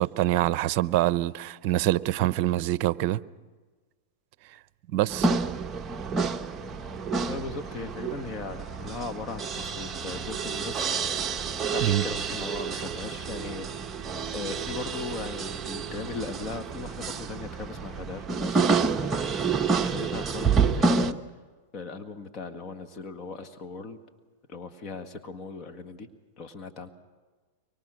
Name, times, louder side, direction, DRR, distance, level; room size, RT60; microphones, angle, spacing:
voice 1, 0.0-3.2 4.9-5.3 11.8-12.0, right 15 dB, 50° right, 0.7 m, -25 dB
sound 1, 5.1-21.1, right 5 dB, 20° right, 0.9 m, -29 dB
sound 2, 6.5-19.3, left 4 dB, 85° left, 2.8 m, -53 dB
voice 2, 7.3-10.9 11.7-13.7 14.3-19.2 19.7-21.2 21.7-24.0 24.5-26.1 26.4-26.9, left 4 dB, 35° left, 1.8 m, -38 dB
24.0 x 24.0 x 6.4 m
hypercardioid pair, 120°, 0 cm